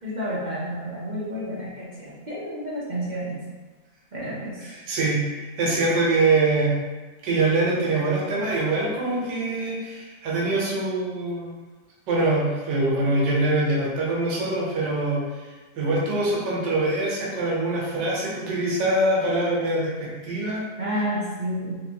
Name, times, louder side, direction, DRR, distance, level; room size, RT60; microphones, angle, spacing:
voice 1, 0.0-3.4 4.1-4.7 20.8-21.7, equal, 70° right, -8 dB, 0.4 m, -30 dB
voice 2, 4.7-6.7 7.2-11.5 12.1-15.5 15.8-20.6, right 2 dB, 85° right, -4 dB, 1.5 m, -24 dB
4.0 x 2.6 x 2.8 m, 1.3 s
omnidirectional pair, 1.8 m